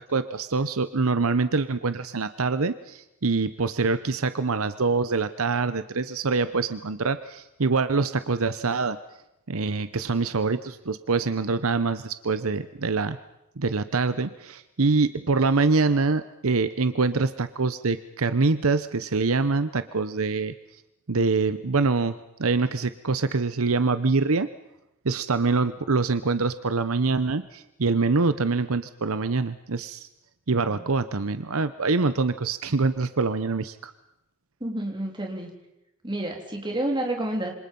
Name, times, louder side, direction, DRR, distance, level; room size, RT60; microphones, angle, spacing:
voice 1, 0.0-9.0 9.5-13.2 13.6-20.5 21.1-24.5 25.0-30.1 30.5-33.9, right 4 dB, 75° right, 12 dB, 0.9 m, -25 dB
voice 2, 34.6-35.5 36.0-37.5, right 1 dB, 20° right, 2 dB, 3.5 m, -29 dB
27.5 x 25.5 x 5.5 m, 0.88 s
head